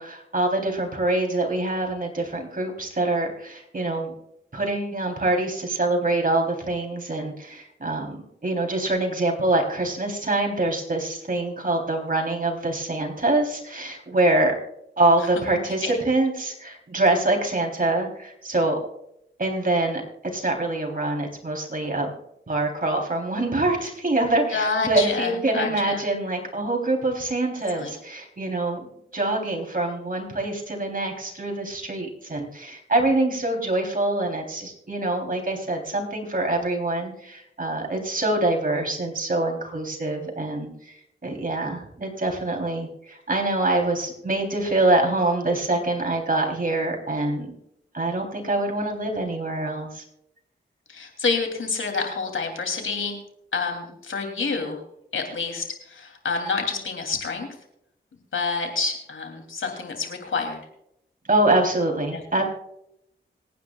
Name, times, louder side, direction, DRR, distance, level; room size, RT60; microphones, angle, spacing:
voice 1, 0.0-4.1 4.5-14.5 15.0-18.8 19.4-20.0 20.3-22.1 22.5-28.9 29.1-41.0 41.2-47.5 47.9-50.0 61.3-62.4, right 2 dB, 40° right, 1 dB, 3.6 m, -25 dB
voice 2, 24.5-26.0 27.7-27.9 50.9-53.2 53.5-54.8 55.1-57.5 58.3-60.6 62.1-62.2, left 4 dB, 75° left, 4 dB, 3.1 m, -28 dB
26.0 x 9.6 x 2.4 m, 0.77 s
cardioid pair, 45°, 21 cm